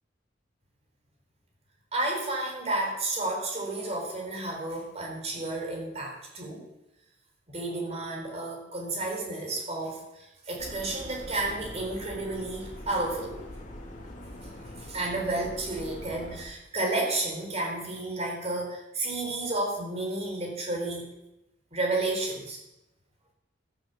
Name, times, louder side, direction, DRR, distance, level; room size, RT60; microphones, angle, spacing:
voice 1, 1.9-6.7 7.5-13.4 14.8-21.1 21.7-22.6, right 2 dB, 35° right, 0 dB, 4.3 m, -31 dB
sound 1, 10.6-16.5, left 1 dB, 40° left, 2.2 m, -43 dB
12.5 x 10.5 x 7.1 m, 0.91 s
head